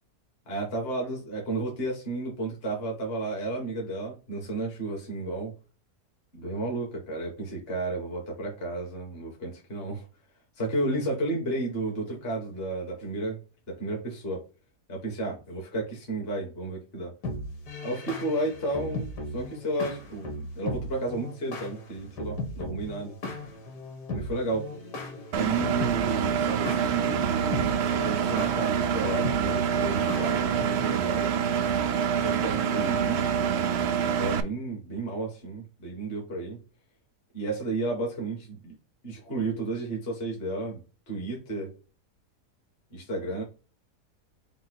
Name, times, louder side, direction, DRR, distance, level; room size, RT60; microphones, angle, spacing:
voice 1, 0.5-5.5 6.3-10.1 10.6-14.4 14.9-17.1 17.8-23.2 24.1-24.7 25.3-31.4 32.2-36.6 37.3-38.8 39.0-41.7 42.9-43.4, right 2 dB, 40° left, 1.6 m, -32 dB
sound 1, 17.2-31.0, left 1 dB, 80° left, 2.0 m, -37 dB
Engine, 25.3-34.4, right 8 dB, 90° right, 0.5 m, -26 dB
5.5 x 2.3 x 4.1 m
omnidirectional pair, 1.7 m